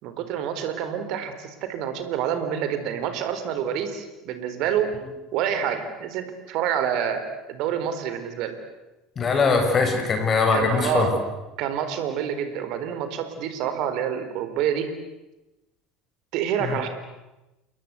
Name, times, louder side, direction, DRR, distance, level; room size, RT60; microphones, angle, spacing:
voice 1, 0.0-4.9 5.3-7.2 7.5-8.5 10.5-11.2 11.6-14.9 16.3-16.9, right 9 dB, 55° right, 9 dB, 4.0 m, -27 dB
voice 2, 9.2-11.1 16.6-16.8, left 4 dB, 35° left, 4 dB, 7.2 m, -21 dB
28.5 x 22.0 x 8.3 m, 0.99 s
figure-of-eight pair, 65°, 0 cm